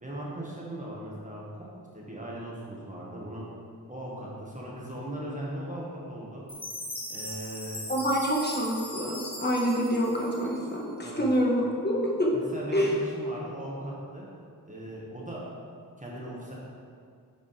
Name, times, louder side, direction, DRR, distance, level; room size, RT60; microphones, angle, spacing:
voice 1, 0.0-1.7 1.9-3.4 3.9-6.4 7.1-7.9 11.0-11.2 12.3-14.3 14.7-15.4 16.0-16.6, right 1 dB, 20° right, -5 dB, 1.6 m, -38 dB
Chime, 6.5-10.9, left 1 dB, 5° left, 1.2 m, -39 dB
voice 2, 7.9-12.3 12.7-12.9, equal, 25° left, -3 dB, 1.4 m, -27 dB
8.9 x 5.3 x 3.4 m, 2.1 s
wide cardioid pair, 95°, 38 cm